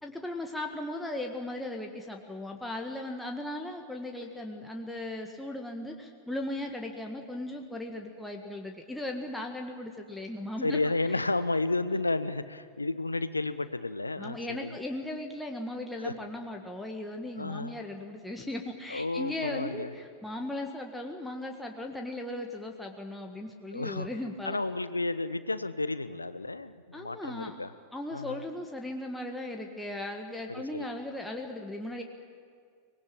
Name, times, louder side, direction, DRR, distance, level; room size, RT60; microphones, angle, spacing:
voice 1, 0.0-10.8 11.1-11.2 14.2-24.6 26.9-27.6 27.9-32.0, left 1 dB, 5° left, 1 dB, 1.8 m, -37 dB
voice 2, 10.6-14.7 16.0-16.1 17.4-17.7 18.9-19.9 23.7-24.1 24.4-27.7 28.1-28.4 30.5-30.8, left 2 dB, 80° left, 14 dB, 0.9 m, -32 dB
24.5 x 20.0 x 8.9 m, 2.2 s
figure-of-eight pair, 90°, 0 cm